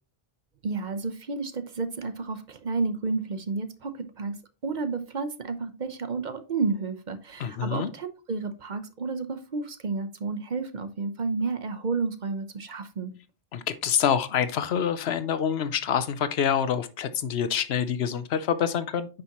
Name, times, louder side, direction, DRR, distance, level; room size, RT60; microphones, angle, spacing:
voice 1, 0.6-4.4 4.6-13.1, right 4 dB, 50° right, 0.9 m, -31 dB
voice 2, 7.4-7.9 13.5-19.1, left 8 dB, 90° left, 1.0 m, -26 dB
9.5 x 5.2 x 3.0 m
omnidirectional pair, 1.0 m